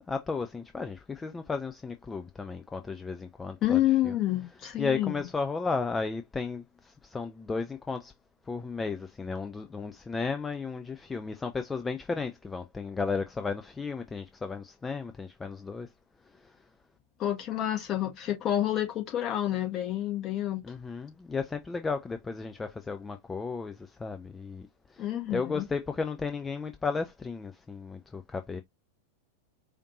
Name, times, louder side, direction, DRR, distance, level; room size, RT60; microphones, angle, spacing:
voice 1, 0.1-3.8 4.0-4.1 4.8-8.1 8.5-15.9 20.6-28.6, left 4 dB, 15° left, 0.5 m, -34 dB
voice 2, 3.6-5.2 17.2-20.6 25.0-25.6, left 13 dB, 30° left, 1.6 m, -29 dB
5.0 x 2.6 x 3.0 m
figure-of-eight pair, 90°, 0 cm